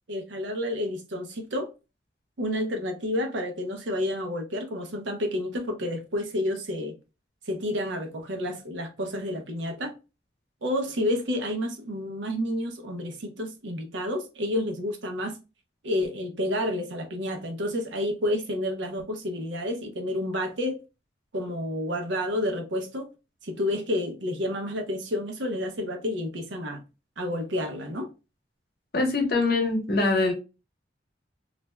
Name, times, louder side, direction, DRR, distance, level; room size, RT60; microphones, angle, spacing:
voice 1, 0.1-1.7 2.4-6.9 7.5-9.9 10.6-15.4 15.8-20.8 21.3-23.1 23.4-26.8 27.2-28.1, left 1 dB, 80° right, 0.7 m, -30 dB
voice 2, 28.9-30.3, left 3 dB, 55° left, 0.8 m, -23 dB
2.5 x 2.1 x 3.1 m
head